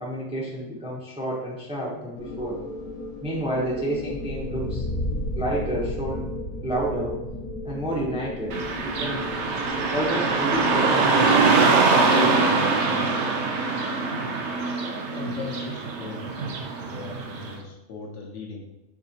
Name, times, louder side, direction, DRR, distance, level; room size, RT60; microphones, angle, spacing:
voice 1, 0.0-2.6 3.2-4.8 5.4-6.2 6.6-7.2 7.6-9.2 9.9-12.7, right 1 dB, 10° right, -4 dB, 0.3 m, -30 dB
sound 1, 2.2-11.6, left 1 dB, 80° left, 1.4 m, -34 dB
Car passing by / Traffic noise roadway noise, 8.5-17.5, right 4 dB, 65° right, 0.8 m, -23 dB
voice 2, 14.8-16.5 16.8-18.6, left 4 dB, 65° left, 0 dB, 0.8 m, -39 dB
4.9 x 3.5 x 2.7 m, 0.97 s
omnidirectional pair, 1.6 m